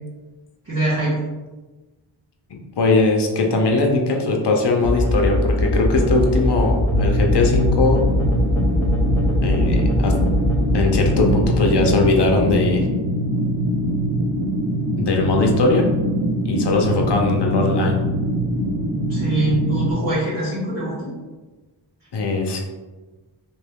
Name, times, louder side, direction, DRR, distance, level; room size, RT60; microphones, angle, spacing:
voice 1, 0.6-1.2 19.1-21.1, right 2 dB, 30° right, -12 dB, 1.4 m, -23 dB
voice 2, 2.8-8.1 9.4-10.1 10.7-12.8 15.0-15.9 16.4-18.0 22.1-22.6, left 3 dB, 55° left, 1 dB, 0.7 m, -20 dB
sound 1, 4.8-13.0, left 1 dB, 5° left, 0.6 m, -22 dB
sound 2, 6.9-19.9, right 1 dB, 85° right, 1.1 m, -23 dB
3.0 x 2.6 x 3.4 m, 1.2 s
wide cardioid pair, 60°, 50 cm